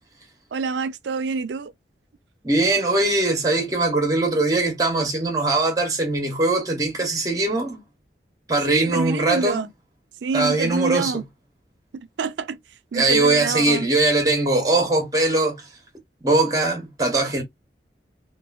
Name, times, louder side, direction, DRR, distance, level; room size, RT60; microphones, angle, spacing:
voice 1, 0.5-1.7 8.7-9.7 10.2-11.2 12.2-12.6 12.9-13.9, right 4 dB, 85° right, 0.4 m, -26 dB
voice 2, 2.4-7.8 8.5-9.7 10.3-11.1 12.9-15.7 16.2-17.4, right 2 dB, 20° right, 0.8 m, -21 dB
3.0 x 2.2 x 2.3 m
head